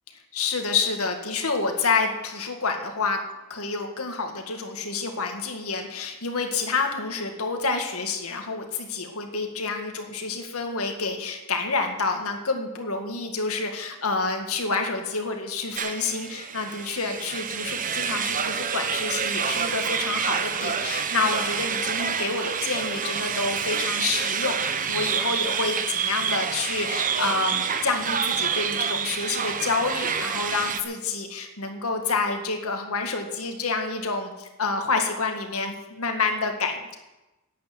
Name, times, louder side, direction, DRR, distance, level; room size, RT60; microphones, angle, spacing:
voice 1, 0.3-3.2 3.5-36.9, left 4 dB, 80° left, 4 dB, 2.0 m, -28 dB
sound 1, 15.7-30.8, right 6 dB, 40° right, 0.8 m, -28 dB
11.0 x 8.6 x 9.5 m, 1.0 s
head